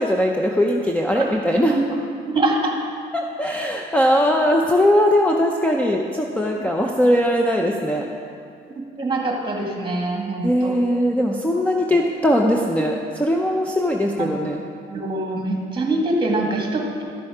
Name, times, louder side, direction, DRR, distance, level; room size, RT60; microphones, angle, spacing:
voice 1, 0.0-1.8 3.1-8.0 10.4-14.6, equal, 5° left, 0 dB, 0.7 m, -20 dB
voice 2, 2.3-2.7 6.6-6.7 9.0-10.8 14.2-14.3 14.9-17.0, right 2 dB, 25° right, 0 dB, 2.1 m, -24 dB
12.5 x 6.9 x 4.9 m, 2.4 s
cardioid pair, 90°, 20 cm